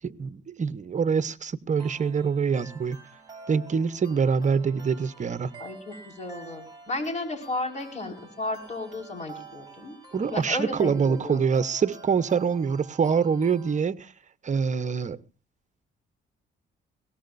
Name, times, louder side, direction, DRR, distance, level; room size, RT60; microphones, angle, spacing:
voice 1, 0.0-3.0 3.5-5.5 10.1-14.1 14.4-15.2, right 6 dB, 40° right, 0.9 m, -25 dB
sound 1, 1.8-13.8, right 3 dB, 20° right, 7.0 m, -48 dB
voice 2, 5.6-10.0 10.2-11.6, left 2 dB, 35° left, 5.3 m, -34 dB
22.0 x 18.0 x 2.6 m
cardioid pair, 90°, 20 cm